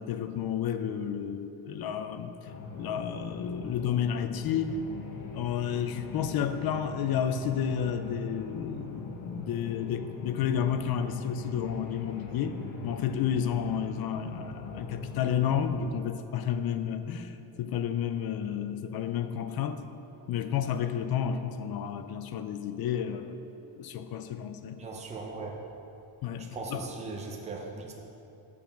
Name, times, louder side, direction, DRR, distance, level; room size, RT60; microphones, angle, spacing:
voice 1, 0.0-2.3 2.7-4.8 5.3-12.6 12.8-17.3 17.6-19.8 20.3-23.4 23.8-24.8 26.2-26.9, left 8 dB, 50° left, 10 dB, 0.5 m, -31 dB
sound 1, 2.4-15.7, left 4 dB, 80° left, 1.1 m, -42 dB
voice 2, 24.8-25.5 26.5-28.0, right 3 dB, 15° right, -1 dB, 0.7 m, -38 dB
7.3 x 7.0 x 5.8 m, 2.9 s
cardioid pair, 170°, 47 cm